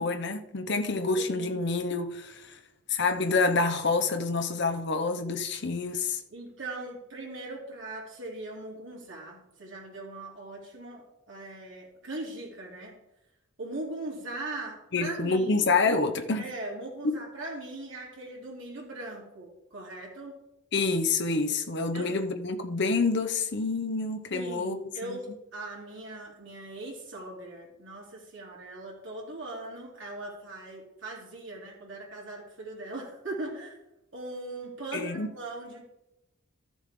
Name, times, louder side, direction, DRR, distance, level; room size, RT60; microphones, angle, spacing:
voice 1, 0.0-2.6 2.9-6.2 14.9-16.5 17.0-17.1 20.7-24.8 25.1-25.2 34.9-35.3, left 3 dB, 55° left, 0.9 m, -27 dB
voice 2, 1.2-1.7 6.3-13.0 13.6-15.6 16.4-20.3 21.9-22.1 24.3-33.8 34.1-35.8, right 2 dB, 60° right, 3.2 m, -40 dB
13.0 x 7.2 x 3.7 m
head